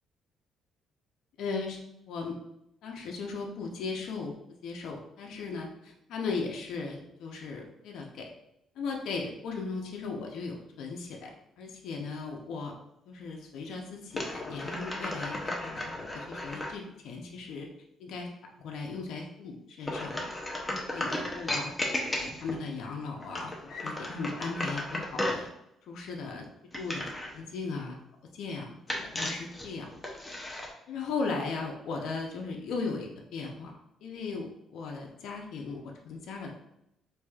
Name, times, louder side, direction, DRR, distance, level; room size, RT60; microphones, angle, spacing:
voice 1, 1.4-1.8 2.1-2.3 2.8-4.3 4.6-8.2 8.8-11.3 11.6-12.7 13.1-17.7 18.0-18.3 18.6-20.2 20.7-21.7 22.1-25.5 25.9-26.5 26.8-28.0 28.3-29.9 30.9-33.7 34.0-36.5, left 4 dB, 75° left, 0 dB, 0.5 m, -37 dB
sound 1, 14.1-16.8 19.8-22.6 23.2-25.5 26.7-27.4 28.9-30.7, left 1 dB, 10° left, 0.6 m, -35 dB
4.6 x 2.6 x 2.3 m, 0.80 s
cardioid pair, 140°, 0 cm